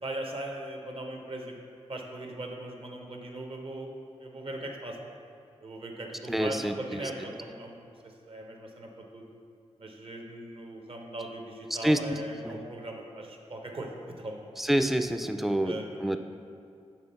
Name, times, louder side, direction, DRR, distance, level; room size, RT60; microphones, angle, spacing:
voice 1, 0.0-1.5 1.9-3.9 4.2-5.0 5.6-9.2 9.8-14.5 15.6-16.2, right 1 dB, 55° right, 1 dB, 0.9 m, -39 dB
voice 2, 6.3-6.7 11.8-12.2 12.4-12.6 14.6-16.2, right 1 dB, ahead, 8 dB, 0.3 m, -27 dB
7.1 x 3.4 x 5.5 m, 2.4 s
cardioid pair, 65°, 11 cm